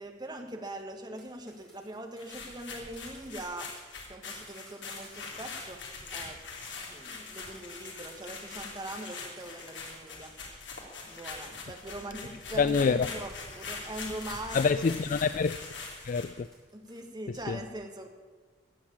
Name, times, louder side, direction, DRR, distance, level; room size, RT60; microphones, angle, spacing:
voice 1, 0.0-3.7 4.1-5.8 6.1-6.4 6.9-10.3 11.1-14.9 16.7-18.1, right 1 dB, 25° right, 1.6 m, -42 dB
sound 1, 1.2-10.7 11.2-17.0, equal, 5° left, 5.2 m, -58 dB
sound 2, 2.2-16.4, left 4 dB, 70° left, 2.9 m, -42 dB
voice 2, 12.6-13.1 14.5-15.6 16.0-16.5 17.5-17.6, left 5 dB, 45° left, 0.3 m, -26 dB
14.5 x 7.8 x 8.6 m
head